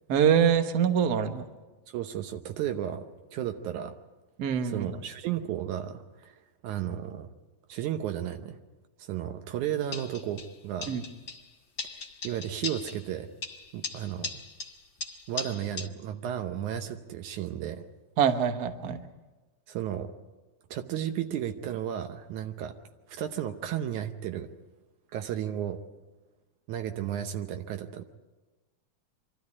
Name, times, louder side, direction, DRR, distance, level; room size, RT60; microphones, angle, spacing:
voice 1, 0.1-1.4 4.4-4.9 10.9-11.0 18.2-19.0, right 8 dB, 55° right, 8 dB, 1.1 m, -24 dB
voice 2, 1.9-3.0 3.3-4.0 4.6-6.4 6.6-7.3 7.7-8.6 9.0-11.0 11.8-13.3 13.7-14.3 15.3-17.8 19.7-20.1 20.7-22.7 23.1-24.5 25.1-25.8 26.7-28.0, right 10 dB, 80° right, 6 dB, 2.3 m, -33 dB
sound 1, 9.9-10.5 10.8-11.5 11.8-13.1 13.4-15.9, left 3 dB, 40° left, 1.1 m, -39 dB
25.5 x 13.0 x 9.7 m, 1.2 s
omnidirectional pair, 3.4 m